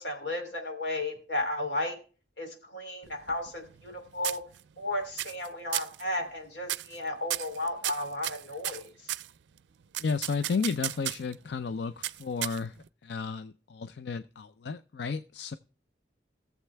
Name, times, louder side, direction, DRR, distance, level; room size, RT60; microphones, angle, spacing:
voice 1, 0.0-2.0 2.4-4.4 4.8-8.9, left 1 dB, 90° left, 4 dB, 2.9 m, -34 dB
sound 1, 3.0-3.9 4.2-4.8 5.2-5.5 5.7-6.0 6.6-7.0 7.3-9.3 9.9-11.3 12.0-12.9, right 15 dB, 85° right, 0.4 m, -34 dB
voice 2, 10.0-15.6, left 5 dB, 70° left, 13 dB, 0.4 m, -33 dB
18.0 x 7.3 x 3.3 m, 0.38 s
head